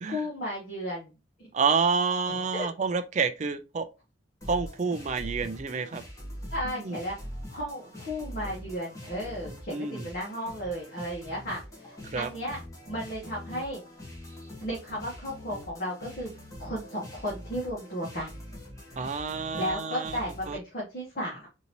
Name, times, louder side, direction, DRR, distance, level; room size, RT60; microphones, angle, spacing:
voice 1, 0.0-1.1 1.4-1.5 2.3-2.7 6.5-7.1 7.5-12.6 12.9-13.8 14.6-16.3 16.6-18.3 19.6-21.5, equal, 50° left, 1.3 m, -34 dB
voice 2, 1.5-3.9 4.5-6.0 6.8-7.0 9.7-10.1 12.1-12.3 19.0-20.2 20.5-20.6, right 5 dB, 40° right, 0.4 m, -28 dB
sound 1, 4.4-20.5, equal, 15° left, 1.1 m, -43 dB
3.9 x 2.7 x 2.9 m
head